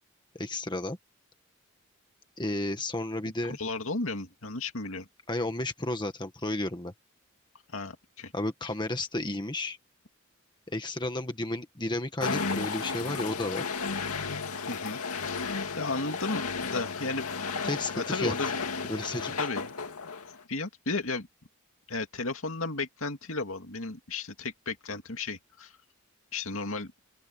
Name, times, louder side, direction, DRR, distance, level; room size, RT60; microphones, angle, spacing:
voice 1, 0.3-1.0 2.4-3.6 5.3-6.9 8.3-9.8 10.7-13.6 17.6-18.5 18.9-19.3, left 1 dB, 20° left, 1.6 m, -32 dB
voice 2, 3.4-5.1 7.7-8.3 14.7-15.4 15.8-17.2 17.9-18.6 19.4-19.7 20.5-21.3 21.9-25.7 26.3-26.9, left 3 dB, 65° left, 2.5 m, -34 dB
sound 1, 12.2-20.4, left 4 dB, 90° left, 2.3 m, -33 dB
open air
head